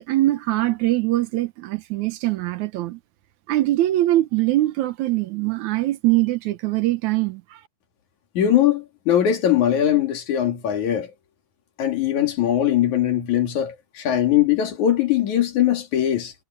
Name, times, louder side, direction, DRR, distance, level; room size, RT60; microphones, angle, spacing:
voice 1, 0.0-3.0 3.5-7.4, right 16 dB, 75° right, 2.3 m, -22 dB
voice 2, 8.4-11.1 11.8-16.3, left 11 dB, 75° left, 3.6 m, -21 dB
omnidirectional pair, 3.4 m